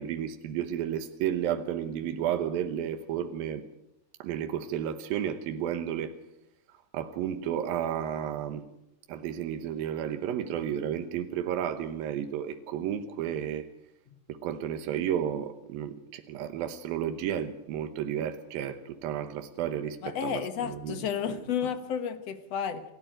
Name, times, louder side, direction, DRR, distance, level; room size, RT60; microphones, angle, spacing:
voice 1, 0.0-3.6 4.2-6.1 6.9-8.6 9.1-13.7 14.3-21.0 21.3-21.4, right 9 dB, 85° right, 2.9 m, -32 dB
voice 2, 20.0-22.8, left 8 dB, 55° left, 2.1 m, -32 dB
28.0 x 13.5 x 9.1 m
omnidirectional pair, 4.0 m